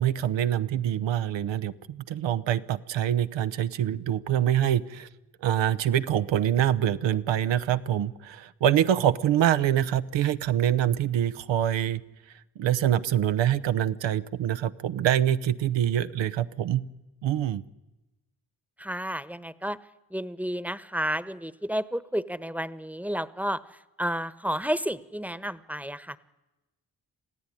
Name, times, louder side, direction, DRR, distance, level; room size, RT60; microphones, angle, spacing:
voice 1, 0.0-5.1 5.4-12.0 12.6-16.8 17.2-17.6, right 11 dB, 75° right, 11 dB, 0.9 m, -25 dB
voice 2, 18.8-19.8 20.1-23.6 24.0-26.2, equal, 5° right, 15 dB, 1.2 m, -31 dB
27.0 x 16.0 x 9.9 m, 1.1 s
supercardioid pair, 45°, 44 cm